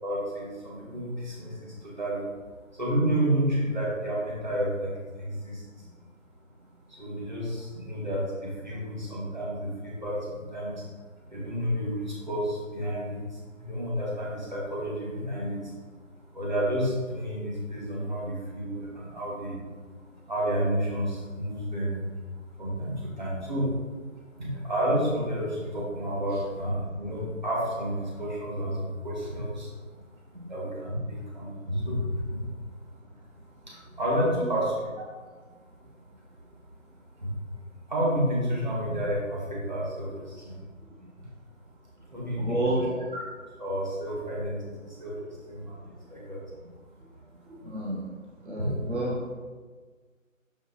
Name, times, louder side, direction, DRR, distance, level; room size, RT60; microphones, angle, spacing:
voice 1, 0.0-2.3 2.7-5.6 6.9-10.8 11.3-15.7 16.3-19.6 20.3-22.0 22.6-23.7 24.4-29.8 30.5-32.4 33.7-35.0 37.2-37.3 37.9-40.6 42.1-42.6 43.6-45.8 46.1-46.4 48.6-48.7, equal, 35° right, -6 dB, 2.0 m, -30 dB
voice 2, 42.4-43.0 47.5-48.0 48.4-49.2, right 1 dB, 55° right, -3 dB, 1.0 m, -30 dB
6.3 x 5.0 x 4.0 m, 1.5 s
figure-of-eight pair, 170°, 41 cm